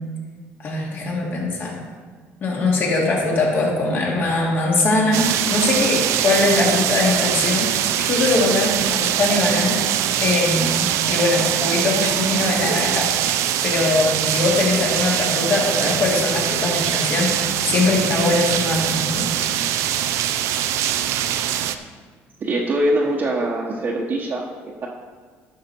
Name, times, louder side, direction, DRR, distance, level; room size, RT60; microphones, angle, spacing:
voice 1, 0.6-1.7 2.4-9.8 10.2-19.3, left 2 dB, 45° left, -3 dB, 2.8 m, -21 dB
sound 1, 5.1-21.8, right 11 dB, 80° right, 0.5 m, -22 dB
voice 2, 22.4-24.9, right 1 dB, 40° right, -3 dB, 1.1 m, -23 dB
11.0 x 6.5 x 4.5 m, 1.5 s
cardioid pair, 105°, 5 cm